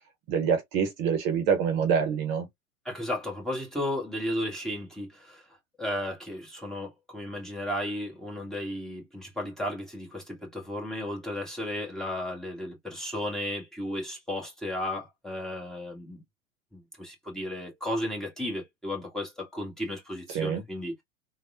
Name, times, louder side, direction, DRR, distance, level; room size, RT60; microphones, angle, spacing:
voice 1, 0.3-2.5 20.3-20.6, right 7 dB, 40° right, 1.0 m, -26 dB
voice 2, 2.8-5.4 5.8-16.2 16.7-21.0, left 1 dB, ahead, 1.5 m, -34 dB
3.4 x 2.3 x 2.5 m
figure-of-eight pair, 95°, 43 cm